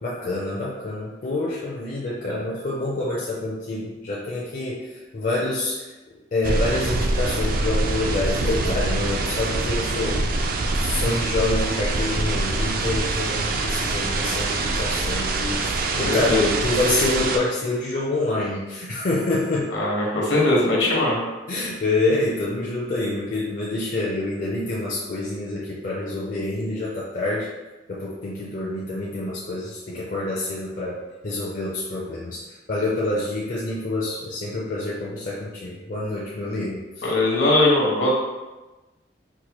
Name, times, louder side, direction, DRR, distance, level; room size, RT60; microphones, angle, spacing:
voice 1, 0.0-4.9 5.1-5.8 6.3-10.2 10.8-19.7 21.5-27.5 27.9-31.0 31.2-36.8, left 2 dB, 50° left, -5 dB, 0.5 m, -27 dB
sound 1, 6.4-17.4, right 2 dB, 50° right, 0.3 m, -24 dB
voice 2, 16.0-16.5 19.7-21.2 37.0-38.1, left 2 dB, 70° left, -3 dB, 1.0 m, -20 dB
4.6 x 2.2 x 2.9 m, 1.1 s
head